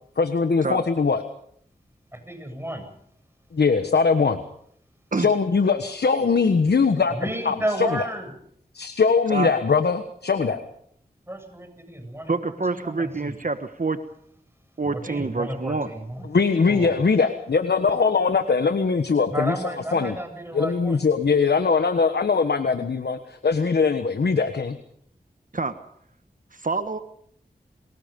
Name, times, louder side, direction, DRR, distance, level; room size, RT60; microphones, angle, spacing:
voice 1, 0.2-1.2 3.5-4.4 5.2-7.2 7.4-7.9 8.7-10.6 16.3-19.5 19.9-20.2 20.5-24.8, left 5 dB, 80° left, 8 dB, 1.3 m, -21 dB
voice 2, 2.1-2.8 7.1-8.3 11.3-13.4 14.8-16.2 16.6-17.0 19.3-21.0, right 1 dB, 15° right, 6 dB, 7.9 m, -32 dB
voice 3, 12.3-14.0 14.8-15.9 25.5-25.8 26.5-27.0, right 3 dB, 55° right, 10 dB, 1.5 m, -27 dB
29.0 x 20.5 x 5.4 m, 0.67 s
cardioid pair, 45°, 17 cm